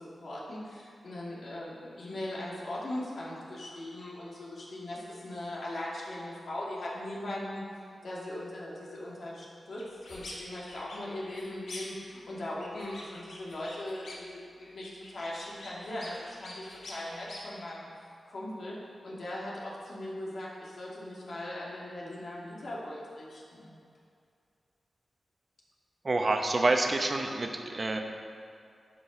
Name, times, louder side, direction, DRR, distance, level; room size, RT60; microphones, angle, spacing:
voice 1, 0.0-17.9 18.3-23.7, left 1 dB, 65° left, -5 dB, 2.4 m, -39 dB
sound 1, 9.8-10.4 10.7-12.1 12.4-14.3 14.6-17.4, left 2 dB, 80° left, 1.9 m, -46 dB
voice 2, 26.0-28.0, right 2 dB, 40° right, 4 dB, 1.0 m, -27 dB
11.5 x 5.5 x 5.5 m, 2.4 s
wide cardioid pair, 80°, 0 cm